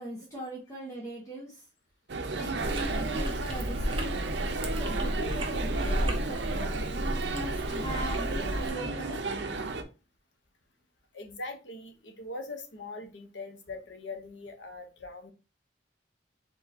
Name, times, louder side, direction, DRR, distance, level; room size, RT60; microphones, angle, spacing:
voice 1, 0.0-1.6 2.3-4.2 4.8-6.7 7.3-9.3, right 1 dB, 20° left, -4 dB, 1.2 m, -40 dB
sound 1, 2.1-9.8, right 3 dB, 70° right, 0.7 m, -33 dB
Chewing mastication, 2.6-8.7, equal, 30° right, 0.9 m, -33 dB
voice 2, 11.1-15.3, left 2 dB, 85° left, 6 dB, 1.0 m, -41 dB
4.6 x 3.8 x 2.8 m, 0.31 s
head